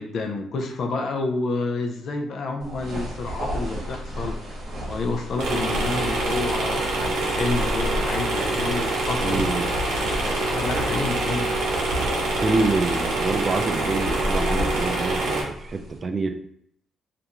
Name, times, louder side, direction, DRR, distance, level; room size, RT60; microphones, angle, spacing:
voice 1, 0.0-4.4 4.8-9.4 10.0-11.5, left 3 dB, 60° left, 4 dB, 0.4 m, -29 dB
sound 1, 2.6-16.0, equal, 60° right, 0.9 m, -33 dB
sound 2, 5.4-15.4, right 2 dB, 85° right, 0.7 m, -25 dB
voice 2, 9.2-9.7 12.4-16.4, right 3 dB, 35° right, 7 dB, 0.3 m, -26 dB
2.5 x 2.2 x 2.8 m, 0.70 s
cardioid pair, 90°, 0 cm